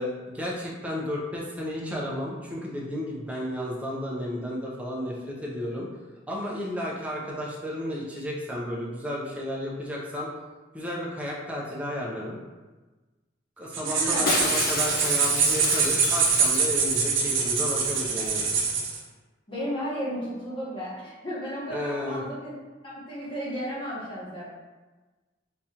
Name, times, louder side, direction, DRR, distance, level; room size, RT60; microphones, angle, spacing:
voice 1, 0.0-5.9 6.3-10.3 10.7-12.4 13.6-18.4 21.7-22.2, left 1 dB, 5° right, -4 dB, 0.6 m, -32 dB
sound 1, 13.7-19.0, right 5 dB, 70° right, 0.6 m, -24 dB
voice 2, 13.8-14.3 19.5-22.5 22.8-24.4, equal, 25° left, -7 dB, 1.1 m, -33 dB
Shatter, 14.3-17.0 17.3-17.4 17.6-18.0 18.2-18.3, left 3 dB, 50° left, 0.6 m, -30 dB
3.6 x 3.1 x 2.8 m, 1.2 s
head